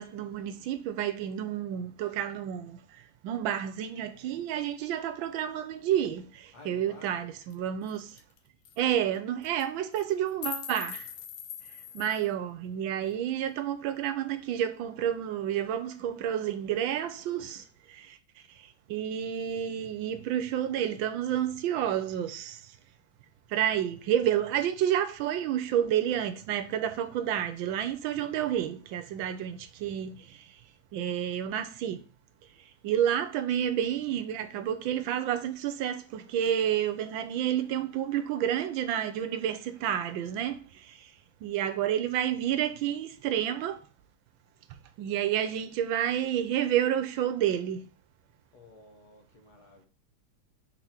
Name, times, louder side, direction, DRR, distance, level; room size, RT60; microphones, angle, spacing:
voice 1, 0.0-2.8 3.2-8.2 8.8-11.1 11.9-18.2 18.6-22.7 23.5-30.5 30.9-32.0 32.8-41.1 41.4-43.8 45.0-47.9, right 10 dB, 80° right, 1.4 m, -30 dB
voice 2, 6.5-7.2 24.2-24.4 48.5-49.9, left 3 dB, 55° left, 1.7 m, -52 dB
sound 1, 7.5-7.6 7.9-8.0 8.2-8.4 8.6-8.8 9.4-9.6 10.0-12.3, left 9 dB, 70° left, 1.3 m, -40 dB
4.6 x 4.1 x 5.7 m
omnidirectional pair, 2.1 m